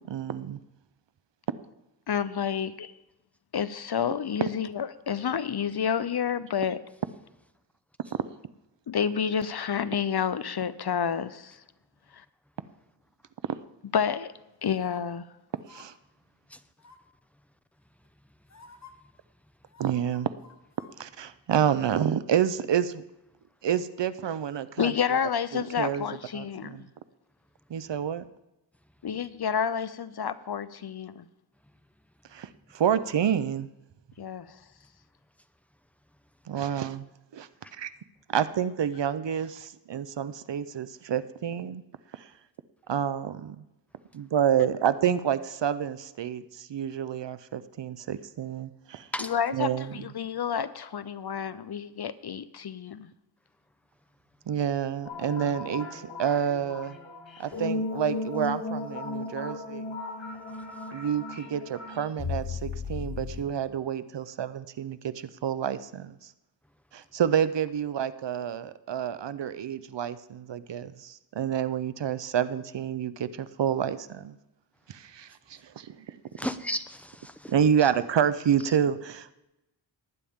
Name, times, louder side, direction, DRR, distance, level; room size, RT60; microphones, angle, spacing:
voice 1, 0.0-0.6 15.7-15.9 19.8-20.3 21.0-23.0 23.6-25.2 25.5-26.1 26.3-26.8 27.7-28.2 32.3-33.7 36.5-37.0 37.3-37.5 37.8-37.9 38.3-41.8 42.1-42.3 42.9-43.6 44.1-49.1 49.5-50.0 54.5-57.0 57.4-59.9 60.9-66.2 66.9-74.4 74.9-76.2 77.5-79.3, right 8 dB, 70° right, 0.7 m, -29 dB
voice 2, 2.1-2.9 3.5-6.8 8.9-11.6 13.9-14.3 14.6-15.2 24.8-26.8 29.0-31.2 34.2-34.5 49.2-53.1, left 7 dB, 60° left, 0.7 m, -29 dB
sound 1, 14.6-15.0 15.6-15.9 16.8-17.2 18.0-18.1 18.5-18.9 19.7-20.9 21.3-21.4, left 4 dB, 40° left, 1.3 m, -52 dB
sound 2, 55.1-63.4, left 3 dB, 90° left, 2.9 m, -36 dB
voice 3, 76.4-77.5 77.8-77.9 78.6-78.8, equal, 5° left, 0.7 m, -35 dB
19.0 x 10.0 x 3.6 m
wide cardioid pair, 80°, 45 cm